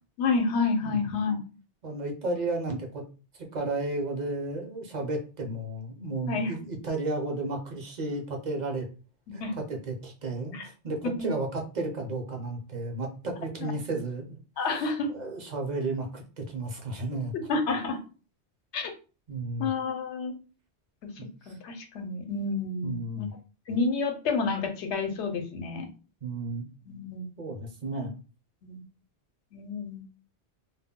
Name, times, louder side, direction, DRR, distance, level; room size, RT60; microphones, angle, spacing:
voice 1, 0.2-1.4 6.3-6.5 9.4-9.6 10.5-10.6 11.0-11.3 13.6-13.7 14.6-15.1 17.3-18.0 18.7-18.9 19.6-20.3 21.0-21.1 21.5-23.3 23.7-25.9 26.9-27.3 28.6-28.8 29.5-30.0, left 4 dB, 80° left, 5 dB, 0.9 m, -29 dB
voice 2, 1.8-3.0 3.5-8.9 9.3-17.3 19.3-19.7 21.2-21.6 22.8-23.3 26.2-26.6 27.4-28.2, right 2 dB, 45° right, 2 dB, 0.7 m, -33 dB
2.3 x 2.0 x 3.6 m, 0.34 s
omnidirectional pair, 1.1 m